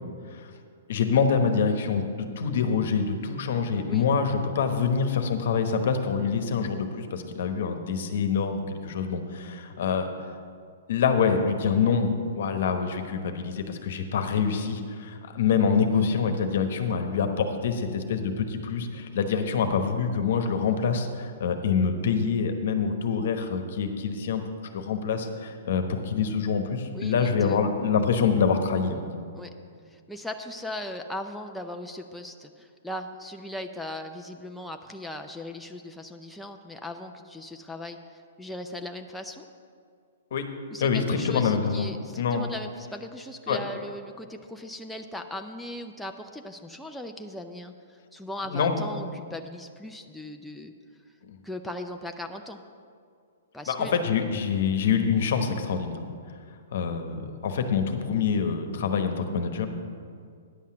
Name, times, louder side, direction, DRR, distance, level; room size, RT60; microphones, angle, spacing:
voice 1, 0.9-10.1 10.9-24.4 24.7-29.0 40.3-40.5 40.8-41.9 42.2-42.5 43.5-43.6 48.4-48.7 53.7-56.0 56.7-59.7, left 6 dB, 65° left, 7 dB, 1.0 m, -26 dB
voice 2, 26.9-27.6 29.3-29.5 29.9-39.5 40.7-50.7 51.4-52.6 53.5-54.0, left 1 dB, ahead, 3 dB, 0.5 m, -38 dB
10.0 x 5.7 x 7.4 m, 2.2 s
hypercardioid pair, 135°, 0 cm